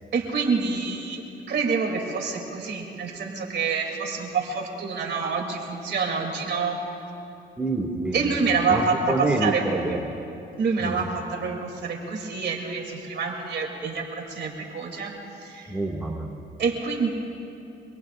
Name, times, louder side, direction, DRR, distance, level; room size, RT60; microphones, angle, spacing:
voice 1, 0.1-1.2 1.5-6.8 8.1-9.8 10.6-15.1 15.4-15.8 16.6-17.1, right 5 dB, 60° right, 1 dB, 2.9 m, -27 dB
voice 2, 7.6-8.2 8.7-8.8 9.1-10.0 10.8-11.0 15.7-16.4, right 2 dB, 5° right, -1 dB, 2.1 m, -27 dB
25.5 x 22.5 x 2.5 m, 2.8 s
cardioid pair, 90°, 20 cm